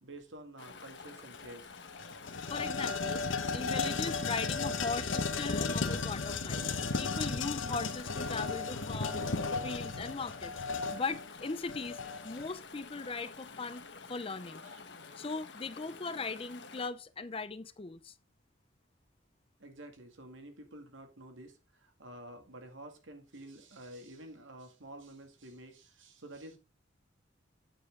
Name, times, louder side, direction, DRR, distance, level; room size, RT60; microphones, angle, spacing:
voice 1, 0.0-1.7 14.6-14.8 19.6-26.6, right 1 dB, 80° right, 2.2 m, -50 dB
Chatter / Stream, 0.6-16.9, left 4 dB, 60° left, 1.2 m, -50 dB
sound 1, 1.3-1.4 1.8-12.5, left 4 dB, 85° left, 1.1 m, -35 dB
voice 2, 2.5-6.7 7.0-9.2 9.6-10.5 10.9-13.8 14.1-14.6 15.2-18.1, left 4 dB, 30° left, 0.5 m, -39 dB
8.9 x 7.4 x 3.7 m
head